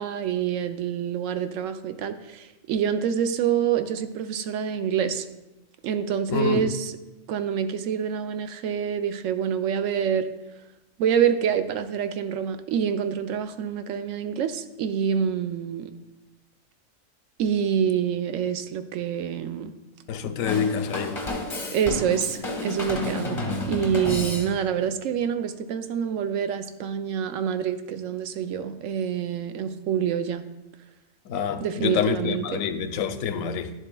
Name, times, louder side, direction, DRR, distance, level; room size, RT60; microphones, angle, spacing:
voice 1, 0.0-5.2 5.8-7.0 7.3-10.3 11.0-15.9 17.4-19.7 21.7-30.4 31.6-32.6, right 8 dB, 75° right, 0.9 m, -26 dB
voice 2, 6.3-6.7 20.1-21.2 31.3-33.7, left 7 dB, 85° left, 1.0 m, -27 dB
Drum kit / Drum, 20.5-24.8, left 2 dB, 25° left, 1.0 m, -31 dB
11.0 x 7.2 x 2.2 m
omnidirectional pair, 1.4 m